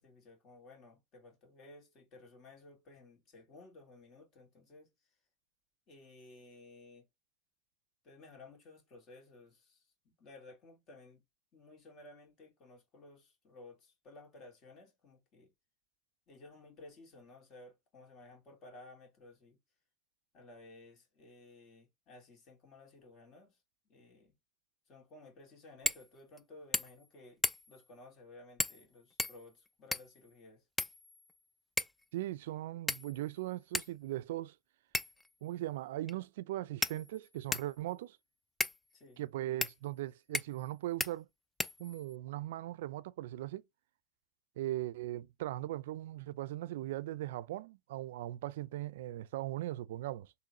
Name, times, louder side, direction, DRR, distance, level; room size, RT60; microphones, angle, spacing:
voice 1, 0.0-4.9 5.9-7.1 8.0-11.2 11.5-15.5 16.3-19.6 20.3-24.4 24.9-30.7 38.9-39.2, left 2 dB, 45° left, 2.1 m, -56 dB
sound 1, 25.8-26.1 26.4-26.5 26.7-27.1 27.4-27.8 28.6-28.8 29.2-30.2 30.8-31.4 31.8-32.0 32.9-33.3 33.7-33.9 34.9-35.3 36.1-36.2 36.8-37.7 38.6-38.8 39.6-39.8 40.3-40.7 41.0-41.1 41.6-42.2, left 2 dB, 10° left, 0.3 m, -35 dB
voice 2, 32.1-34.6 35.4-38.2 39.2-41.3 41.8-43.6 44.6-50.3, right 15 dB, 80° right, 0.3 m, -39 dB
3.7 x 2.9 x 2.9 m
supercardioid pair, 110°, 0 cm